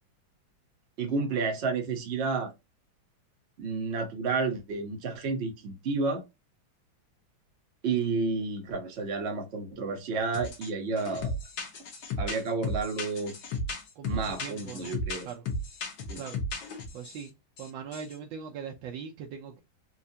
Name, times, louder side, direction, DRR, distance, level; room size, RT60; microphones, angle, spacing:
voice 1, 1.0-2.5 3.6-6.2 7.8-11.3 12.2-13.3 14.1-15.3 16.1-16.2, right 4 dB, 50° right, 0.8 m, -31 dB
sound 1, 10.3-10.7 11.0-17.2 17.6-18.1, left 2 dB, 65° left, 1.6 m, -35 dB
voice 2, 14.0-14.9 15.2-15.4 16.2-16.4 16.9-17.3 17.6-19.6, right 7 dB, 75° right, 1.3 m, -40 dB
4.4 x 2.4 x 2.7 m
omnidirectional pair, 2.2 m